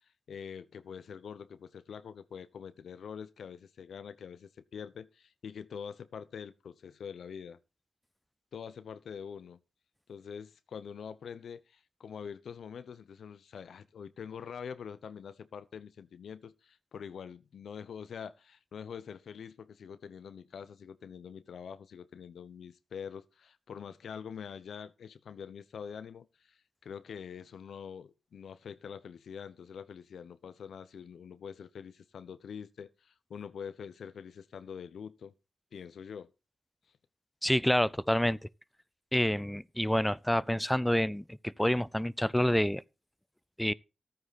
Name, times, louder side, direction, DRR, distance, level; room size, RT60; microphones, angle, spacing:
voice 1, 0.3-7.6 8.5-9.6 10.1-35.3 35.7-36.3, left 7 dB, 80° left, 0.8 m, -45 dB
voice 2, 37.4-38.4 39.1-42.8 43.6-43.7, equal, 5° left, 0.6 m, -28 dB
13.0 x 9.4 x 4.1 m
supercardioid pair, 45°, 0 cm